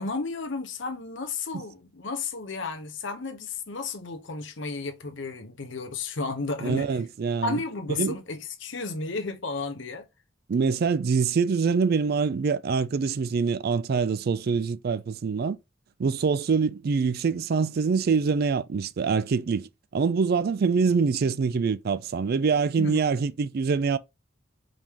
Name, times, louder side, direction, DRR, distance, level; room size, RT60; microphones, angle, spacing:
voice 1, 0.0-7.0 7.4-10.1 22.8-23.1, left 3 dB, 65° left, 0.9 m, -33 dB
voice 2, 6.6-7.6 7.9-8.2 10.5-15.6 16.0-24.0, right 5 dB, 50° right, 0.4 m, -25 dB
5.2 x 3.6 x 2.9 m
head